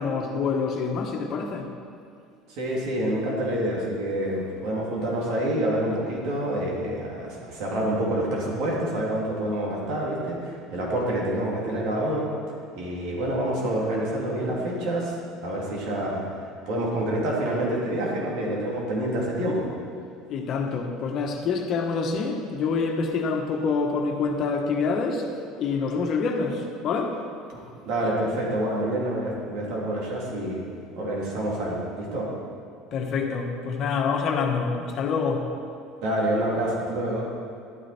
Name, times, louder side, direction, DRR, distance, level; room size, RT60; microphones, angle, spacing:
voice 1, 0.0-1.7 20.3-25.3 25.6-27.2 32.9-35.5, left 4 dB, 55° left, 3 dB, 1.4 m, -26 dB
voice 2, 2.5-12.3 12.7-15.1 15.4-16.2 16.7-19.7 27.5-30.6 30.9-32.3 36.0-37.3, right 1 dB, 65° right, -4 dB, 3.2 m, -27 dB
12.0 x 9.4 x 4.5 m, 2.4 s
hypercardioid pair, 80°, 0 cm